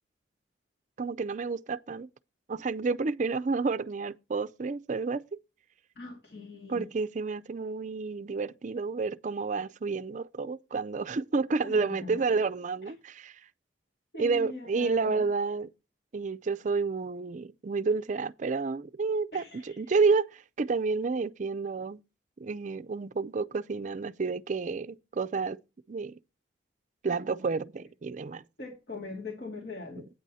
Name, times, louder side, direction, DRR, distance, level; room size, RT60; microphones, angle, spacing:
voice 1, 1.0-2.1 2.5-5.4 6.7-13.4 14.2-15.7 16.1-22.0 22.4-25.6 25.9-26.2 27.0-28.4, right 4 dB, 40° right, 0.4 m, -30 dB
voice 2, 6.0-6.9 11.6-12.4 12.8-12.9 14.1-15.3 19.3-19.8 28.6-30.1, left 3 dB, 60° left, 2.1 m, -41 dB
9.2 x 7.6 x 4.1 m
head